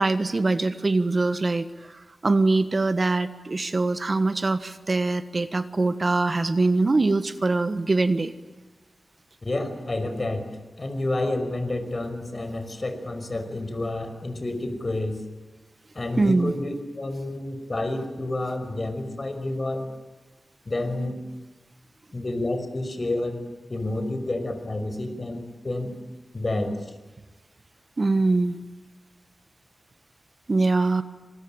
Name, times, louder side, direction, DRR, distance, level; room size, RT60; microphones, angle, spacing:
voice 1, 0.0-8.3 16.2-16.5 28.0-28.6 30.5-31.0, right 3 dB, 45° right, 11 dB, 1.4 m, -23 dB
voice 2, 9.4-10.5 10.8-15.2 15.9-19.9 20.7-21.2 22.1-23.4 23.7-25.9 26.3-26.9, left 2 dB, 40° left, 7 dB, 5.5 m, -29 dB
26.5 x 21.0 x 9.0 m, 1.2 s
cardioid pair, 60°, 0 cm